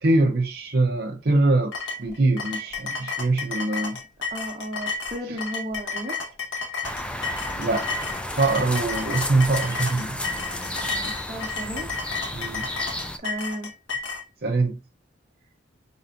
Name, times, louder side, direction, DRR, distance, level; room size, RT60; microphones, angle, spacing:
voice 1, 0.0-4.0 5.3-5.4 7.3-7.9 8.3-10.2 12.3-12.7 14.4-14.8, right 2 dB, 55° right, 0.6 m, -23 dB
sound 1, 1.7-14.2, left 4 dB, 90° left, 1.2 m, -32 dB
voice 2, 4.3-6.2 11.0-11.9 13.2-13.7, right 1 dB, 35° right, 1.1 m, -34 dB
sound 2, 6.8-13.2, left 1 dB, 5° left, 0.4 m, -32 dB
4.3 x 4.0 x 2.5 m
head